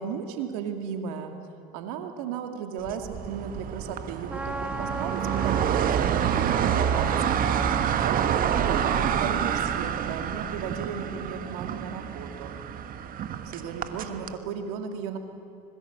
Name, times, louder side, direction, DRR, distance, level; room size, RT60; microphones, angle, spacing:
voice 1, 0.0-1.3 1.7-7.1 8.0-12.6 13.4-15.2, right 7 dB, 75° right, 5 dB, 2.4 m, -35 dB
sound 1, 2.9-14.3, right 9 dB, 50° right, 1.5 m, -27 dB
Trumpet, 4.3-10.5, right 1 dB, 5° right, 1.1 m, -38 dB
26.0 x 21.5 x 8.1 m, 2.6 s
hypercardioid pair, 70°, 18 cm